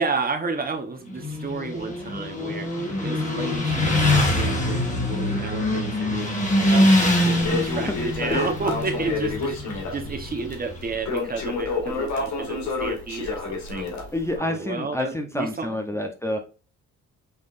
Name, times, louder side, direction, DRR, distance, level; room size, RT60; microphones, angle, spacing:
voice 1, 0.0-6.3 6.6-13.8 14.4-16.0, right 4 dB, 30° right, 1.0 m, -31 dB
Motorcycle, 1.1-10.9, left 1 dB, 25° left, 2.0 m, -24 dB
Crackle, 7.4-14.4, left 3 dB, 70° left, 1.8 m, -29 dB
voice 2, 14.1-16.4, left 1 dB, 10° left, 0.8 m, -28 dB
5.6 x 3.2 x 2.5 m
cardioid pair, 90°, 30 cm